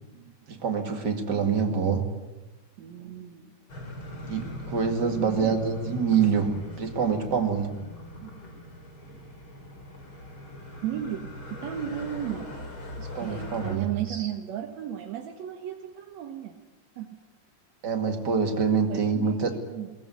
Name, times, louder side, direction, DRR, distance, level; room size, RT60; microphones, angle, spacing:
voice 1, 0.5-2.1 4.3-7.8 13.0-14.3 17.8-19.5, right 6 dB, 35° right, 6 dB, 2.6 m, -26 dB
voice 2, 2.8-3.6 5.2-5.6 8.2-8.3 10.8-12.6 13.2-16.6 17.0-17.2 18.9-19.9, right 10 dB, 65° right, 5 dB, 2.5 m, -35 dB
sound 1, 3.7-13.8, left 1 dB, 40° left, 4.7 m, -41 dB
22.0 x 19.5 x 9.7 m, 1.1 s
omnidirectional pair, 3.5 m